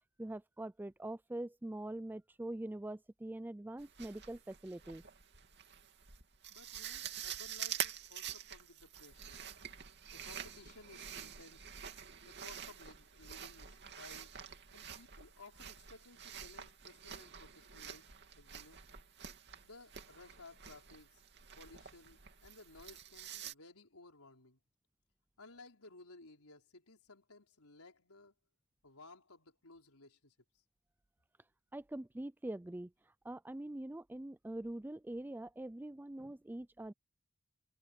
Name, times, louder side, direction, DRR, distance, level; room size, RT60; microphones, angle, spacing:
voice 1, 0.2-5.0 31.7-32.9 33.2-36.9, right 1 dB, 10° right, 0.4 m, -44 dB
sound 1, 3.8-23.5, right 9 dB, 50° right, 2.7 m, -47 dB
voice 2, 6.5-9.4 10.1-11.7 12.2-18.1 18.3-18.8 19.6-21.2 21.6-24.6 25.4-28.3 28.8-30.3, left 3 dB, 80° left, 4.4 m, -58 dB
head